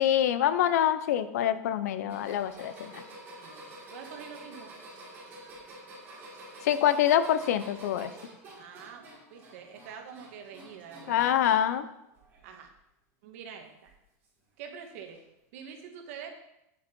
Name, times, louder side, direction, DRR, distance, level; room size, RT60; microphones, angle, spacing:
voice 1, 0.0-3.0 6.6-8.1 11.1-11.9, left 10 dB, 80° left, 12 dB, 0.8 m, -25 dB
sound 1, 2.1-11.8 12.1-12.7 13.9-14.0 15.1-15.2, right 1 dB, 25° right, 3.6 m, -48 dB
voice 2, 3.9-4.7 8.6-9.0 9.3-11.3 12.4-12.7 13.2-13.9 14.6-15.2 15.5-16.3, right 7 dB, 60° right, 4 dB, 1.7 m, -45 dB
9.2 x 7.2 x 4.5 m, 0.86 s
supercardioid pair, 170°, 9 cm